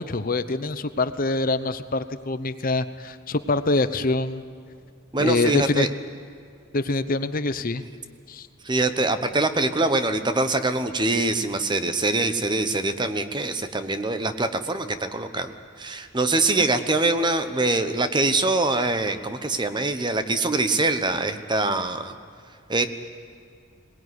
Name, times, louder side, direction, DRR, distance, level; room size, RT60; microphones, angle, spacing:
voice 1, 0.0-4.4 5.2-5.9 6.7-7.8 8.3-8.5, left 2 dB, 45° left, 12 dB, 0.8 m, -25 dB
voice 2, 5.1-5.9 8.6-22.1 22.7-22.8, right 2 dB, 20° right, 9 dB, 1.0 m, -24 dB
22.0 x 19.5 x 9.6 m, 2.3 s
head